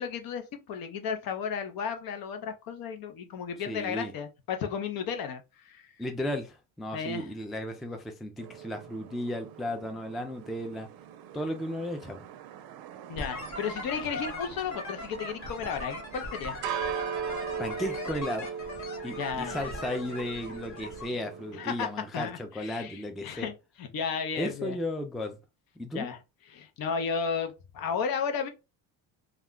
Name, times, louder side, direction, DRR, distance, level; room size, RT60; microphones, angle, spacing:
voice 1, 0.0-5.9 6.9-7.3 13.1-16.6 19.2-19.7 21.5-21.9 22.1-24.8 25.9-26.2 26.5-28.5, left 6 dB, 60° left, 0.7 m, -34 dB
voice 2, 3.7-4.1 6.0-10.9 11.3-12.3 17.6-18.6 19.0-23.5 24.3-25.4 25.8-26.1, left 1 dB, ahead, 0.3 m, -35 dB
sound 1, 8.4-21.7, right 7 dB, 65° right, 0.5 m, -40 dB
sound 2, 13.2-21.1, left 2 dB, 45° left, 1.2 m, -40 dB
2.4 x 2.1 x 3.6 m
cardioid pair, 100°, 39 cm